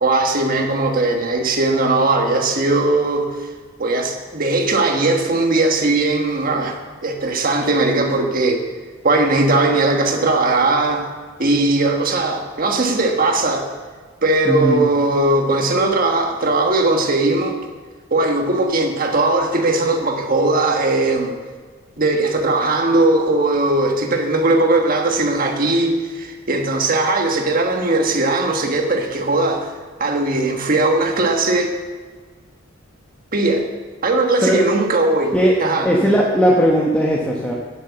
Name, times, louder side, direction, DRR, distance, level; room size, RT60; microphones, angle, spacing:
voice 1, 0.0-3.4 3.8-8.6 9.0-11.1 11.4-13.6 14.2-17.6 18.1-21.3 22.0-29.7 30.0-31.7 33.3-33.7 34.0-35.3 35.6-35.9, right 2 dB, 45° right, 3 dB, 1.4 m, -18 dB
voice 2, 14.5-14.8 34.4-34.7 35.3-35.6 35.8-37.5, equal, 5° left, -4 dB, 1.1 m, -17 dB
9.7 x 7.8 x 6.9 m, 1.5 s
head